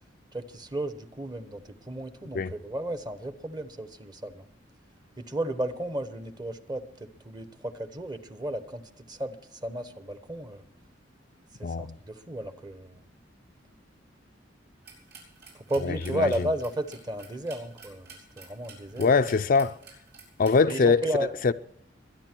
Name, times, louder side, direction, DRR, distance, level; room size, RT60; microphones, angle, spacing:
voice 1, 0.3-4.4 5.2-10.6 11.6-13.0 15.7-19.2 20.7-21.3, right 1 dB, 20° right, 1.1 m, -33 dB
voice 2, 11.6-11.9 15.8-16.3 19.0-19.8 20.4-21.0 21.4-21.5, left 4 dB, 45° left, 0.5 m, -22 dB
sound 1, 14.8-20.6, right 4 dB, 70° right, 7.4 m, -51 dB
22.5 x 10.5 x 4.5 m
head